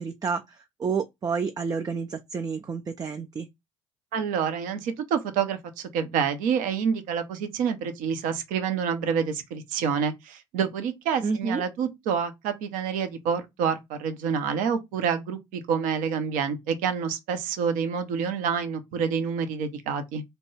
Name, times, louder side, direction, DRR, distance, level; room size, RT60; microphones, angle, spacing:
voice 1, 0.0-3.5 11.2-11.6, right 5 dB, 25° right, 0.4 m, -30 dB
voice 2, 4.1-20.2, right 7 dB, 60° right, 0.6 m, -28 dB
2.9 x 2.2 x 3.1 m
figure-of-eight pair, 55°, 16 cm